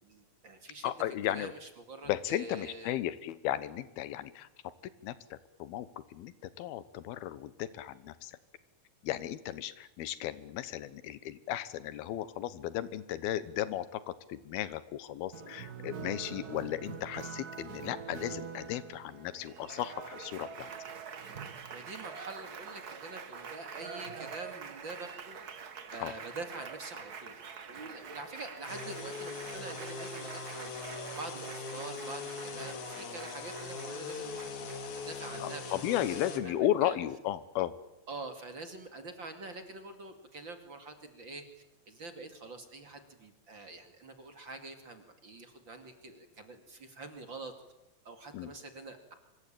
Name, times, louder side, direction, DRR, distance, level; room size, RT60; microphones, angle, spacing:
voice 1, 0.0-3.0 21.7-25.6 25.9-27.3 27.7-37.0 38.1-41.4 41.9-47.5 48.0-49.1, right 3 dB, 35° right, 7 dB, 2.6 m, -46 dB
voice 2, 0.8-1.5 2.1-4.5 5.0-5.1 5.6-5.9 6.1-8.3 9.0-14.0 14.3-20.7 26.0-26.1 35.4-37.7 48.3-48.5, left 12 dB, 90° left, 16 dB, 3.0 m, -35 dB
Applause, 15.3-35.0, right 6 dB, 85° right, 0.8 m, -45 dB
sound 1, 28.7-36.4, left 4 dB, 55° left, 3.5 m, -41 dB
25.0 x 22.0 x 8.8 m, 0.92 s
omnidirectional pair, 4.2 m